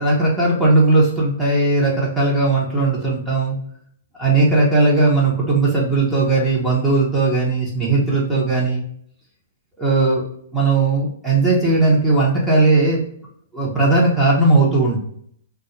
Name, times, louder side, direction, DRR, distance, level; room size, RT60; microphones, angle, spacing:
voice 1, 0.0-3.6 4.2-8.8 9.8-10.2 10.5-13.0 13.5-15.0, right 3 dB, 5° right, -6 dB, 0.8 m, -17 dB
2.3 x 2.3 x 2.9 m, 0.65 s
hypercardioid pair, 135°, 0 cm